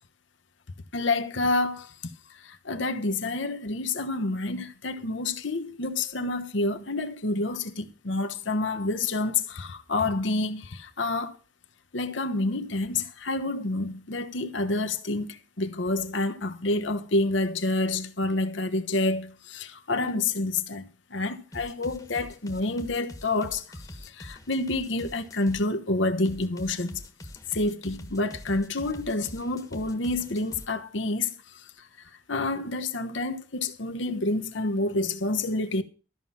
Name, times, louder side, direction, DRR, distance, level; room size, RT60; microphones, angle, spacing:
voice 1, 0.9-1.9 2.3-11.4 11.9-27.0 27.5-31.9 32.3-35.8, left 2 dB, 80° left, 1.1 m, -28 dB
sound 1, 21.5-25.6 26.2-30.7, left 1 dB, 20° left, 1.2 m, -44 dB
13.0 x 5.7 x 7.4 m
head